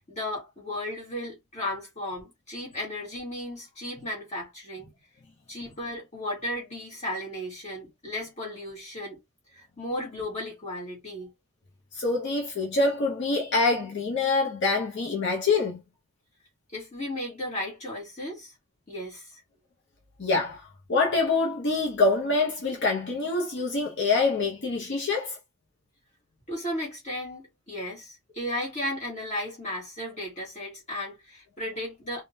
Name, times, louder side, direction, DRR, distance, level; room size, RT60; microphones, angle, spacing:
voice 1, 0.1-4.9 5.5-9.2 9.5-11.3 16.7-18.5 18.9-19.4 26.5-32.2, left 1 dB, 30° left, 1.6 m, -35 dB
voice 2, 11.9-15.8 20.2-25.4, left 3 dB, 50° left, 0.7 m, -25 dB
3.5 x 2.1 x 2.6 m
head